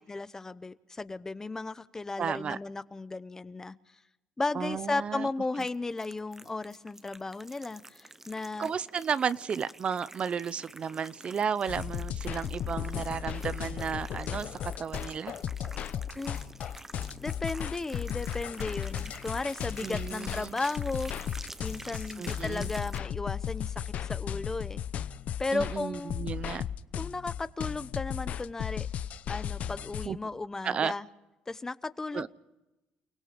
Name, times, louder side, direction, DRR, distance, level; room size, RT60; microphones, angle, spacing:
voice 1, 0.1-3.7 4.4-8.7 16.1-16.4 17.2-21.1 21.6-24.8 25.4-26.3 27.0-28.9 29.3-31.1 31.5-32.3, left 3 dB, 20° left, 15 dB, 0.8 m, -35 dB
voice 2, 2.2-2.6 4.5-5.3 8.6-15.3 19.8-20.6 22.2-22.7 25.5-26.6 30.0-30.2 30.6-30.9 32.1-32.3, right 7 dB, 40° right, 16 dB, 0.7 m, -33 dB
sound 1, 5.6-23.0, right 2 dB, 15° right, 0.9 m, -48 dB
sound 2, 11.7-30.1, left 9 dB, 55° left, 0.7 m, -35 dB
29.5 x 17.5 x 5.1 m, 1.0 s
cardioid pair, 95°, 3 cm